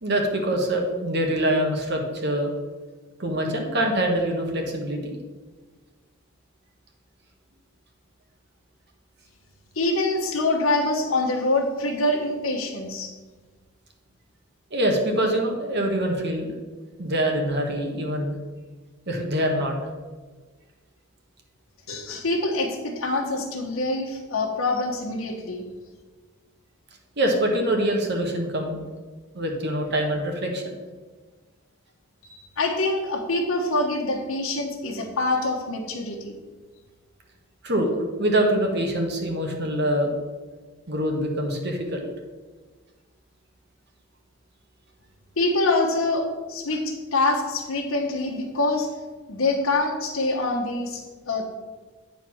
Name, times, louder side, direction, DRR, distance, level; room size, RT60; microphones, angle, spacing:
voice 1, 0.0-2.5 3.2-5.1 14.7-16.5 17.0-18.3 19.1-19.7 27.2-28.8 29.3-30.7 37.6-37.9 38.2-40.1 40.9-42.1, right 1 dB, 55° right, 2 dB, 1.4 m, -24 dB
voice 2, 9.7-13.1 21.9-25.6 32.2-36.4 45.4-48.9 49.3-51.5, left 2 dB, 85° left, -2 dB, 1.1 m, -25 dB
9.2 x 4.1 x 6.2 m, 1.4 s
head